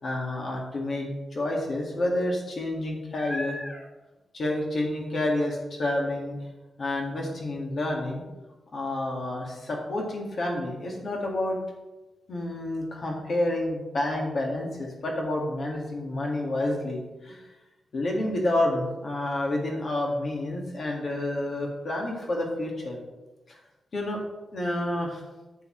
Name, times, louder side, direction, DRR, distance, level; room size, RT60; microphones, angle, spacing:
voice 1, 0.0-3.9 4.3-6.4 6.8-8.2 8.7-11.6 12.3-17.5 17.9-23.0 23.5-23.6 23.9-24.2 24.5-25.2, left 1 dB, 50° left, -1 dB, 1.9 m, -29 dB
10.0 x 6.8 x 3.2 m, 1.1 s
wide cardioid pair, 155°, 0 cm